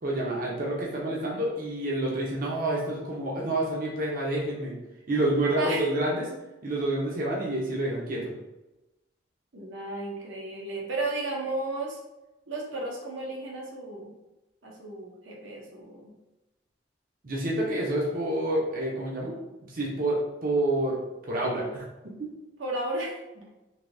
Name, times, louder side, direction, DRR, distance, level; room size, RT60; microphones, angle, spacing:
voice 1, 0.0-4.7 5.1-6.2 6.6-8.3 17.2-19.4 19.7-21.0 21.3-22.3, right 1 dB, 45° right, -3 dB, 0.7 m, -28 dB
voice 2, 5.6-5.9 9.5-12.0 12.5-14.1 14.6-16.1 22.6-23.2, right 2 dB, 85° right, -2 dB, 0.8 m, -33 dB
3.3 x 2.7 x 2.6 m, 1.0 s
head